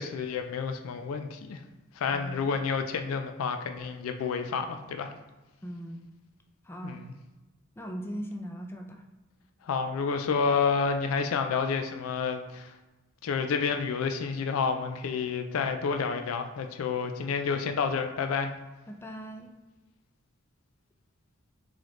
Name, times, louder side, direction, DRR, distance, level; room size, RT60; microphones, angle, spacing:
voice 1, 0.0-1.6 2.0-5.1 6.8-7.1 9.6-12.7 13.2-18.5, left 5 dB, 85° left, 6 dB, 0.4 m, -29 dB
voice 2, 2.1-2.6 5.6-6.1 6.6-7.0 7.8-9.0 18.9-19.5, equal, 10° left, 3 dB, 0.4 m, -39 dB
3.8 x 3.1 x 3.1 m, 1.1 s
head